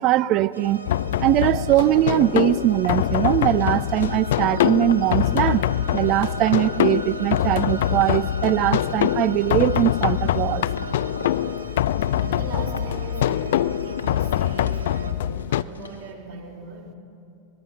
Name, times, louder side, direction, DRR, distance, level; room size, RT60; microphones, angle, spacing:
voice 1, 0.0-5.6 5.9-10.7 11.4-11.6, right 14 dB, 40° right, 20 dB, 0.5 m, -21 dB
sound 1, 0.5-15.1, right 1 dB, 80° right, 1.2 m, -39 dB
sound 2, 0.9-15.6, left 12 dB, 55° left, 0.4 m, -24 dB
sound 3, 1.3-5.1 5.5-6.6 7.0-8.7 8.9-9.6 9.9-16.1, left 4 dB, 75° left, 1.5 m, -39 dB
voice 2, 12.1-17.0, right 3 dB, 55° right, -1 dB, 3.9 m, -39 dB
26.0 x 19.0 x 5.6 m, 2.7 s
figure-of-eight pair, 90°, 0 cm